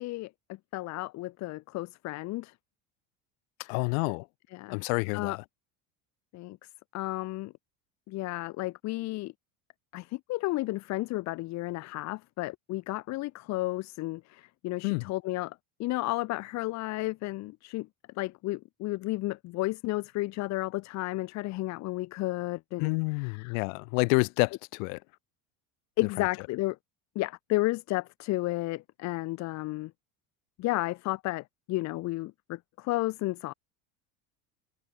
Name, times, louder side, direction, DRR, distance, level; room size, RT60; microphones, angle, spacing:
voice 1, 0.0-2.5 3.6-3.7 4.5-4.8 5.1-5.4 6.3-6.6 6.9-7.5 8.1-9.3 9.9-17.9 18.2-23.6 26.0-26.8 27.2-29.9 30.6-33.5, left 19 dB, 45° left, 0.6 m, -32 dB
voice 2, 3.7-4.3 4.7-5.4 14.8-15.1 22.8-25.0, left 36 dB, 80° left, 2.2 m, -28 dB
cardioid pair, 145°, 40 cm